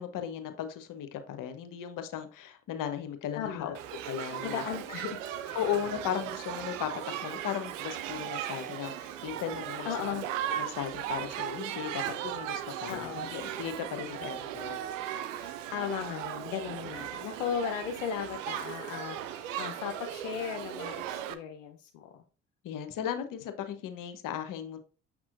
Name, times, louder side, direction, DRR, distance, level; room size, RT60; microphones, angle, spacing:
voice 1, 0.0-3.7 4.0-4.6 5.5-6.9 7.2-9.9 10.6-14.8 15.4-15.5 22.6-24.8, left 9 dB, 55° left, 8 dB, 1.1 m, -36 dB
voice 2, 3.3-3.8 4.4-5.6 9.8-10.3 12.9-13.4 14.2-14.5 15.7-22.2, left 8 dB, 80° left, 4 dB, 0.7 m, -36 dB
Shout / Human group actions, 3.7-21.3, right 11 dB, 80° right, 0.6 m, -37 dB
6.7 x 6.0 x 2.6 m, 0.38 s
hypercardioid pair, 50°, 37 cm